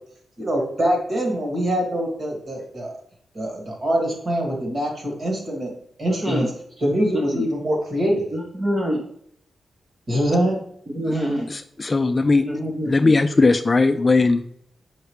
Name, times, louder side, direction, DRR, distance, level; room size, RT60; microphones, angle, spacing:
voice 1, 0.4-2.9 3.3-5.7 6.0-6.5 6.8-8.3 10.1-10.6, equal, 40° right, 0 dB, 2.3 m, -23 dB
voice 2, 8.3-9.0 10.9-11.5 12.4-13.1, equal, 25° right, -2 dB, 0.9 m, -25 dB
voice 3, 11.5-12.4 12.9-14.5, left 3 dB, 25° left, 8 dB, 0.3 m, -18 dB
6.6 x 5.7 x 3.2 m, 0.68 s
wide cardioid pair, 160°, 0 cm